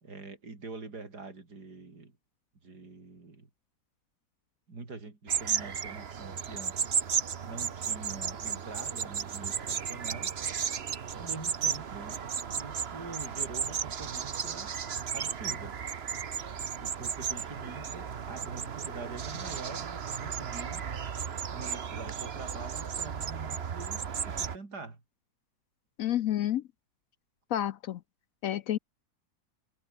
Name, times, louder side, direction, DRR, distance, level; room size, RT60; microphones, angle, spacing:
voice 1, 0.0-2.2 2.6-3.5 4.7-6.9 7.4-10.4 11.1-12.2 12.5-14.8 15.1-15.8 16.8-25.0, right 3 dB, 70° right, 4.5 m, -45 dB
sound 1, 5.3-24.6, right 7 dB, 40° right, 1.1 m, -34 dB
voice 2, 26.0-26.6 27.5-28.0 28.4-28.8, left 12 dB, 65° left, 0.9 m, -29 dB
omnidirectional pair, 1.8 m